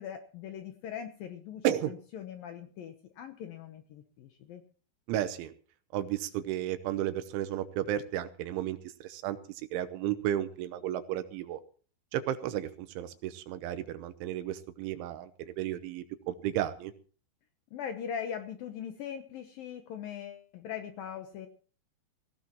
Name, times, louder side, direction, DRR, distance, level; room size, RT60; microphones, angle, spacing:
voice 1, 0.0-4.6 17.7-21.5, left 8 dB, 75° left, 7 dB, 2.2 m, -41 dB
voice 2, 5.1-5.5 5.9-11.6 12.1-16.9, right 12 dB, 80° right, 10 dB, 3.3 m, -33 dB
18.5 x 16.0 x 3.0 m, 0.42 s
omnidirectional pair, 5.4 m